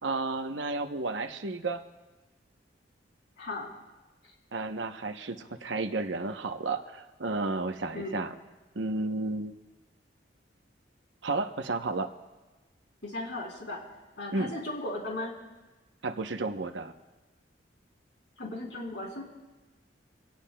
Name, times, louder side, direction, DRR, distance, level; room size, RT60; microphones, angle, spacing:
voice 1, 0.0-1.8 4.5-8.3 8.7-9.5 11.2-12.1 14.3-14.5 16.0-16.9, right 3 dB, 85° right, 7 dB, 0.9 m, -32 dB
voice 2, 3.4-3.7 7.9-8.2 13.0-13.8 14.2-15.3 18.4-19.2, left 2 dB, 70° left, -1 dB, 3.4 m, -36 dB
25.0 x 17.5 x 2.3 m, 1.2 s
head